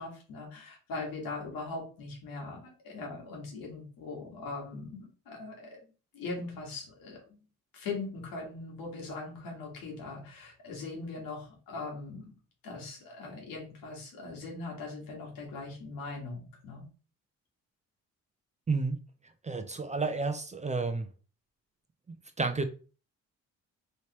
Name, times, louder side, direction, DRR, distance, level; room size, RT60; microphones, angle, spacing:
voice 1, 0.0-7.4 7.7-12.2 12.6-16.8, left 3 dB, 80° left, 1.5 m, -40 dB
voice 2, 18.7-19.0 19.4-21.1 22.4-22.7, right 3 dB, 20° right, 0.5 m, -30 dB
3.2 x 2.9 x 2.9 m
supercardioid pair, 60°, 34 cm